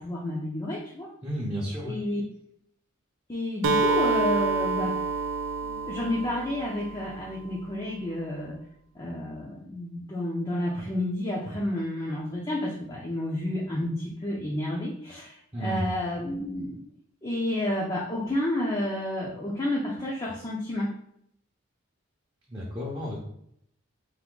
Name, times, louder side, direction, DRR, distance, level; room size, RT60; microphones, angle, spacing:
voice 1, 0.0-1.1 1.8-2.2 3.3-5.0 5.6-8.6 8.9-16.8 17.2-20.9, left 1 dB, 20° left, -3 dB, 0.5 m, -30 dB
voice 2, 1.2-2.0 15.5-15.9 22.5-23.2, equal, 20° right, -4 dB, 0.7 m, -32 dB
Acoustic guitar, 3.6-7.5, right 3 dB, 80° right, 0.4 m, -28 dB
3.5 x 2.6 x 3.7 m, 0.71 s
head